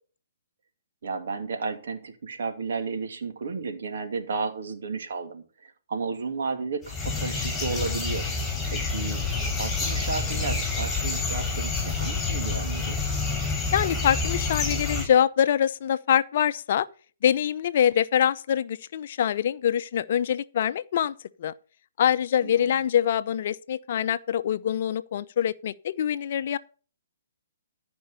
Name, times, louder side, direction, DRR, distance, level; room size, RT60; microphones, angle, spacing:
voice 1, 1.0-8.3 8.7-9.2 9.5-13.0 22.4-22.7, right 4 dB, 65° right, 2.6 m, -33 dB
sound 1, 6.8-15.1, left 4 dB, 10° left, 5.1 m, -28 dB
voice 2, 13.7-16.9 17.2-21.5 22.0-26.6, left 9 dB, 50° left, 0.7 m, -24 dB
14.0 x 5.3 x 6.7 m
hypercardioid pair, 140°, 0 cm